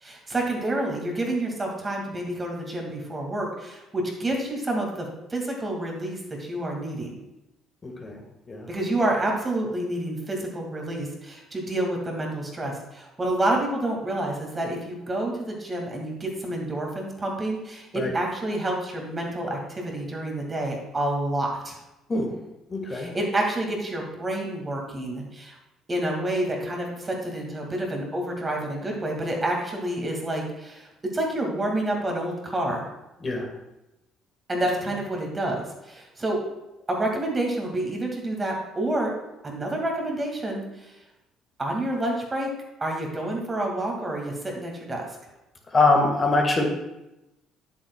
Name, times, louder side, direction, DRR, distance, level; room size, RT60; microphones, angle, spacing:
voice 1, 0.0-7.2 8.7-21.7 22.9-25.6 25.9-32.9 34.5-36.4 36.9-39.1 39.4-40.9 41.6-42.5 42.8-45.1, right 1 dB, 25° right, 0 dB, 2.2 m, -28 dB
voice 2, 7.8-8.2 8.5-8.7 17.9-18.1 22.1-22.3 22.7-23.1 33.2-33.5 45.7-46.7, left 3 dB, 30° left, 1 dB, 1.7 m, -23 dB
10.0 x 8.9 x 2.3 m, 0.96 s
figure-of-eight pair, 50°, 0 cm